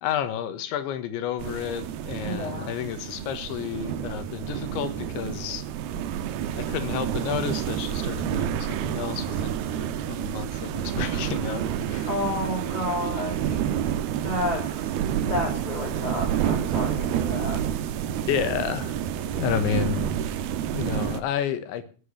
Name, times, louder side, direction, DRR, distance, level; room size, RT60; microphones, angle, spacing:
voice 1, 0.0-5.7 6.5-11.6 11.9-12.1 18.3-20.1 20.7-21.9, left 10 dB, 80° left, 11 dB, 3.7 m, -31 dB
sound 1, 1.4-21.2, right 9 dB, 70° right, 2.6 m, -29 dB
voice 2, 2.2-2.7 12.1-13.7 14.2-14.9 15.2-17.6, left 1 dB, 10° left, -3 dB, 4.8 m, -31 dB
15.5 x 8.6 x 8.4 m, 0.39 s
omnidirectional pair, 5.3 m